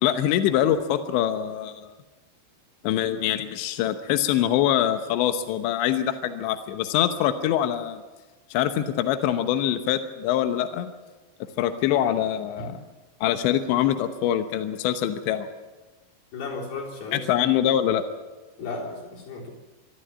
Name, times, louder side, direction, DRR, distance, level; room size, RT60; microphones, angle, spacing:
voice 1, 0.0-1.9 2.8-8.0 8.5-10.9 11.6-12.8 13.2-15.5 17.1-18.0, left 11 dB, 85° left, 9 dB, 3.3 m, -24 dB
voice 2, 16.3-17.3 18.6-19.5, left 3 dB, 55° left, -3 dB, 5.6 m, -34 dB
24.0 x 13.5 x 8.9 m, 1.2 s
omnidirectional pair, 5.1 m